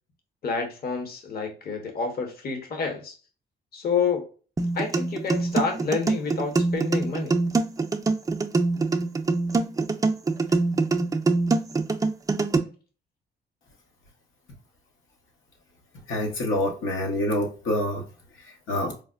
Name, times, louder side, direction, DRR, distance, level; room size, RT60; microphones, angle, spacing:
voice 1, 0.4-3.2 3.7-4.2 4.7-7.3, left 5 dB, 50° left, 4 dB, 0.9 m, -29 dB
sound 1, 4.6-12.6, right 3 dB, 20° right, 0.4 m, -24 dB
voice 2, 16.1-18.0 18.7-18.9, left 1 dB, 80° left, 1 dB, 0.9 m, -26 dB
4.8 x 2.1 x 2.4 m, 0.36 s
cardioid pair, 90°, 20 cm